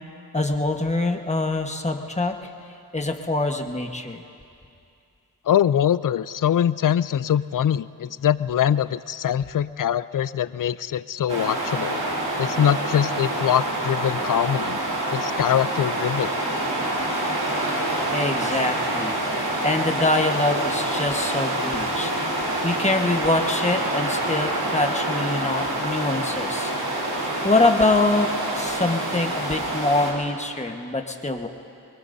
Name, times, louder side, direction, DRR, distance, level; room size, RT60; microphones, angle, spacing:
voice 1, 0.3-2.3 2.9-4.2 18.1-19.2 19.6-22.1 22.6-26.7 27.4-28.3 28.5-31.5, left 2 dB, 15° left, 3 dB, 1.4 m, -24 dB
voice 2, 5.5-12.0 12.4-14.8 15.1-16.3, left 9 dB, 55° left, 16 dB, 0.5 m, -23 dB
sound 1, 11.3-30.1, right 1 dB, 65° right, 4.0 m, -26 dB
24.0 x 22.0 x 2.7 m, 2.5 s
cardioid pair, 50°, 40 cm